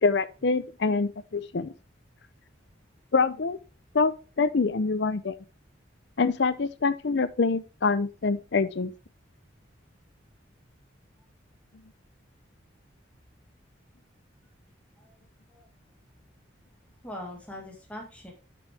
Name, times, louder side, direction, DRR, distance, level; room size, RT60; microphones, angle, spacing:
voice 1, 0.0-1.7 3.1-3.6 3.9-5.3 6.2-8.9, left 4 dB, 60° left, 0.5 m, -25 dB
voice 2, 17.0-18.3, left 1 dB, 5° left, 1.9 m, -41 dB
8.4 x 6.2 x 3.3 m
head